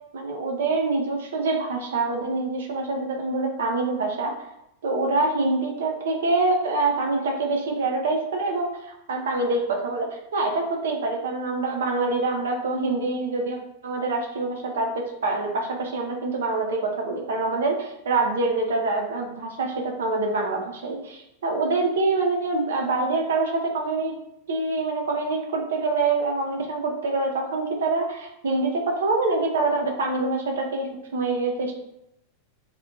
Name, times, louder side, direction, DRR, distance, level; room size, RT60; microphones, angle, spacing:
voice 1, 0.1-4.3 4.8-24.1 24.5-31.7, right 3 dB, 60° right, 1 dB, 0.4 m, -25 dB
2.5 x 2.0 x 2.5 m, 0.82 s
figure-of-eight pair, 90°, 0 cm